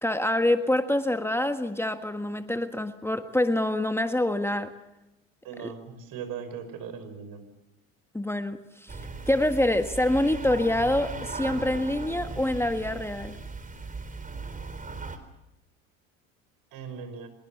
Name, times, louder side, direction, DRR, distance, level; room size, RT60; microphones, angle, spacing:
voice 1, 0.0-4.7 5.6-5.7 8.1-9.0 9.3-13.4, left 1 dB, 5° left, 8 dB, 1.5 m, -26 dB
voice 2, 5.4-7.4 16.7-17.3, right 7 dB, 55° right, 9 dB, 5.8 m, -39 dB
sound 1, 8.9-15.2, right 3 dB, 20° right, 4.1 m, -38 dB
25.5 x 22.5 x 7.3 m, 0.97 s
hypercardioid pair, 75°, 40 cm